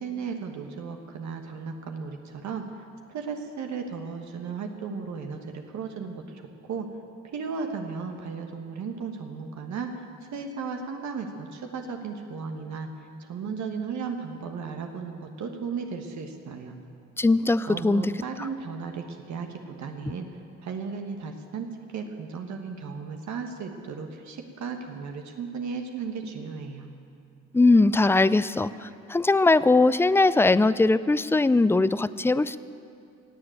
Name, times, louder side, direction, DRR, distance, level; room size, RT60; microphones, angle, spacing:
voice 1, 0.0-2.6 3.1-6.9 7.3-9.9 10.3-12.9 13.2-16.8 17.7-20.3 20.6-26.9, right 5 dB, 70° right, 4 dB, 1.3 m, -35 dB
voice 2, 17.2-18.1 27.5-32.6, left 3 dB, 10° left, 16 dB, 0.3 m, -20 dB
16.5 x 7.7 x 9.3 m, 2.6 s
cardioid pair, 90°, 30 cm